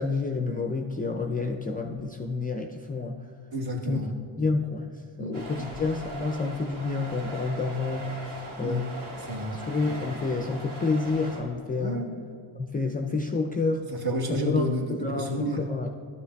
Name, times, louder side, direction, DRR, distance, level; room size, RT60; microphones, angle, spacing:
voice 1, 0.0-3.2 3.9-4.0 4.4-4.9 5.2-8.9 9.5-12.1 12.6-13.9 14.3-14.6 14.9-15.9, left 3 dB, 20° left, 3 dB, 0.3 m, -29 dB
voice 2, 3.5-4.1 5.1-5.7 8.6-8.9 9.2-9.6 11.8-12.1 13.9-15.7, equal, 50° right, 1 dB, 1.3 m, -31 dB
sound 1, 5.3-11.4, right 1 dB, 80° right, 2.0 m, -39 dB
12.0 x 6.9 x 2.3 m, 2.3 s
cardioid pair, 85°, 47 cm